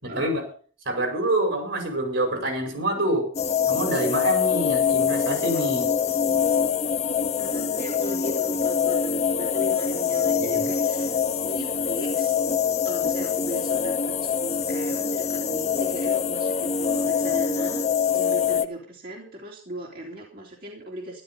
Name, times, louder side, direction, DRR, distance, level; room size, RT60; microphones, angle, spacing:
voice 1, 0.0-0.5 0.9-3.3 3.7-5.9 10.3-10.7, right 1 dB, 75° right, 4 dB, 5.4 m, -26 dB
sound 1, 3.3-18.7, left 6 dB, 35° left, 0.6 m, -24 dB
voice 2, 7.4-12.4 12.8-17.8 18.1-21.2, equal, 50° right, -2 dB, 3.5 m, -38 dB
13.5 x 12.0 x 5.5 m, 0.42 s
head